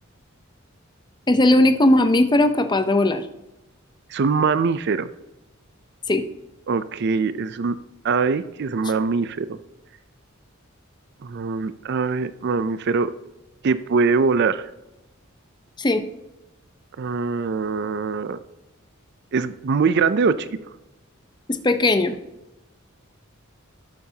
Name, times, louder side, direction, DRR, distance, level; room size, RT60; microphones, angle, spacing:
voice 1, 1.3-3.2 6.1-6.2 15.8-16.0 21.5-22.2, left 1 dB, 20° left, 9 dB, 0.7 m, -18 dB
voice 2, 4.1-5.1 6.7-7.8 8.0-9.5 11.2-13.1 13.6-14.7 17.0-18.4 19.3-20.3, right 4 dB, 55° right, 13 dB, 0.4 m, -22 dB
12.5 x 8.6 x 2.8 m, 0.95 s
head